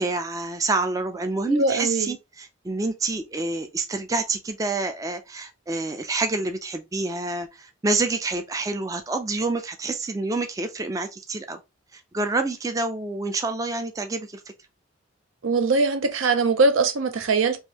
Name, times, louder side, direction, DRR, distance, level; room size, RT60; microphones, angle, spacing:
voice 1, 0.0-11.6 11.9-14.4, right 3 dB, 15° right, 0.3 m, -27 dB
voice 2, 1.5-2.2 15.4-17.6, right 3 dB, 80° right, 0.5 m, -22 dB
3.5 x 2.6 x 2.9 m
head